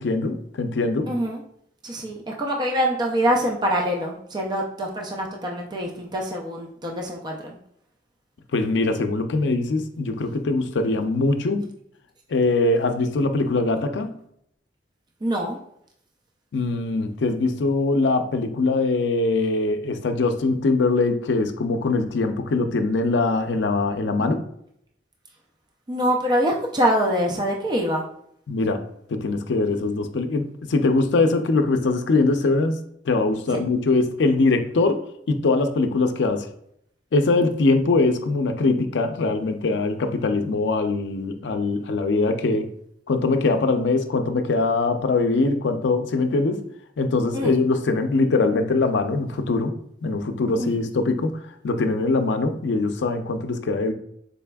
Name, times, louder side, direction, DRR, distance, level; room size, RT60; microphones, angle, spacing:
voice 1, 0.0-1.1 8.5-11.7 12.3-14.2 16.5-24.4 28.5-28.8 29.1-32.8 33.0-36.5 37.1-42.7 43.1-46.6 47.0-53.9, left 3 dB, 85° left, 7 dB, 0.4 m, -22 dB
voice 2, 1.1-1.4 1.8-7.6 15.2-15.6 25.9-28.0 47.3-47.6 50.6-50.7, equal, 25° right, 0 dB, 0.4 m, -24 dB
4.0 x 3.3 x 2.2 m, 0.71 s
head